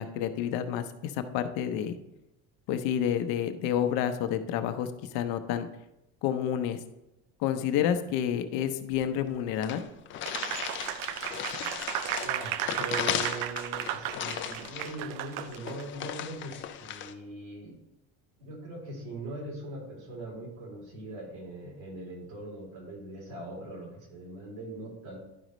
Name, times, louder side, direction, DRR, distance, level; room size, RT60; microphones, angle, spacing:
voice 1, 0.0-2.0 2.7-5.7 6.2-6.8 7.4-9.8, left 9 dB, 80° left, 8 dB, 0.8 m, -29 dB
sound 1, 9.2-9.3 9.6-17.1, left 10 dB, 35° left, 0.4 m, -36 dB
Applause, 10.3-15.8, right 12 dB, 65° right, 0.5 m, -34 dB
voice 2, 12.2-17.8 18.4-25.2, right 2 dB, 85° right, -1 dB, 2.9 m, -41 dB
11.0 x 5.1 x 3.1 m, 0.92 s
cardioid pair, 170°, 36 cm